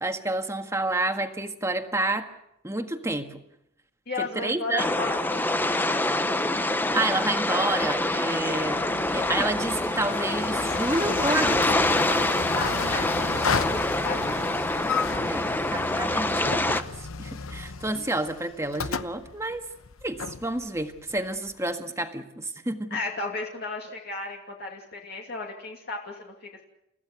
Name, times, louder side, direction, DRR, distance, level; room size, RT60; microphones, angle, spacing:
voice 1, 0.0-2.3 2.6-3.4 4.2-5.1 6.9-8.8 9.1-11.9 15.3-19.6 20.0-23.0, right 2 dB, 15° right, 6 dB, 1.6 m, -29 dB
voice 2, 4.1-5.5 5.9-6.1 12.6-14.9 22.9-26.6, left 3 dB, 50° left, 0 dB, 2.7 m, -35 dB
sound 1, 4.8-16.8, left 1 dB, 10° left, 0.8 m, -26 dB
sound 2, 8.5-21.5, left 5 dB, 90° left, 0.9 m, -33 dB
29.5 x 15.5 x 8.1 m, 0.83 s
head